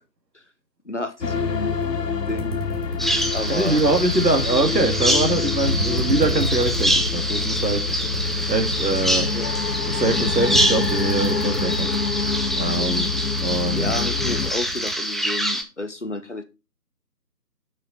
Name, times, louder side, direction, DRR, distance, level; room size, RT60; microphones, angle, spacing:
voice 1, 0.8-1.8 2.3-2.6 3.3-3.8 9.3-9.5 13.7-16.4, left 2 dB, 45° left, 0.9 m, -31 dB
sound 1, 1.2-14.5, left 6 dB, 75° left, 1.0 m, -27 dB
sound 2, 1.8-1.9 2.3-5.2 5.5-12.0 12.2-12.5 12.7-14.9, right 3 dB, 45° right, 3.3 m, -31 dB
Bird vocalization bird call bird song, 3.0-15.6, equal, ahead, 0.5 m, -25 dB
voice 2, 3.5-7.8 8.5-9.3 9.9-11.9 12.6-13.1 13.4-13.9, right 2 dB, 80° right, 2.1 m, -23 dB
6.6 x 6.3 x 4.0 m
figure-of-eight pair, 170°, 49 cm